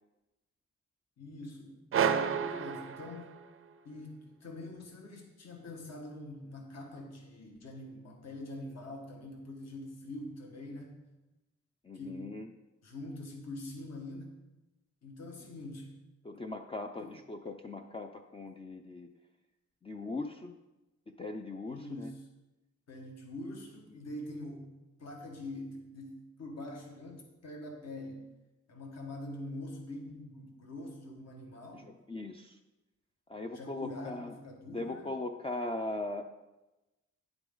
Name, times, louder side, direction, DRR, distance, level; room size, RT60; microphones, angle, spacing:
voice 1, 1.2-3.3 3.8-10.9 11.9-12.3 12.8-14.3 15.0-15.9 17.0-17.1 21.7-22.2 22.9-24.7 25.0-28.2 28.7-31.8 33.5-35.1, left 1 dB, 60° left, 1 dB, 1.7 m, -44 dB
sound 1, 1.9-3.7, right 7 dB, 45° right, 0.5 m, -31 dB
voice 2, 11.8-12.5 16.2-19.1 19.8-20.6 21.1-22.1 31.7-32.6 33.3-34.4 34.7-36.2, left 2 dB, 20° left, 4 dB, 0.4 m, -39 dB
10.0 x 8.1 x 3.9 m, 1.0 s
wide cardioid pair, 150°, 29 cm